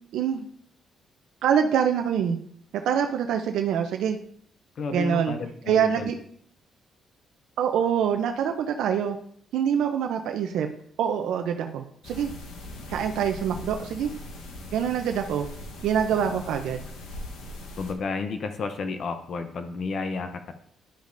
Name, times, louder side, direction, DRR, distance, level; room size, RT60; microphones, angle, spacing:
voice 1, 0.1-0.5 1.4-2.4 2.8-4.2 4.9-5.3 5.7-6.2 7.6-9.2 9.5-10.7 11.0-12.3 12.9-14.1 14.7-15.5 15.8-16.8, right 8 dB, 80° right, 5 dB, 0.5 m, -25 dB
voice 2, 4.8-6.1 16.1-16.4 17.8-20.5, left 4 dB, 55° left, 8 dB, 0.6 m, -32 dB
sound 1, 12.0-17.9, left 1 dB, 90° left, 1.0 m, -40 dB
11.0 x 5.1 x 2.6 m, 0.64 s
cardioid pair, 90°, 0 cm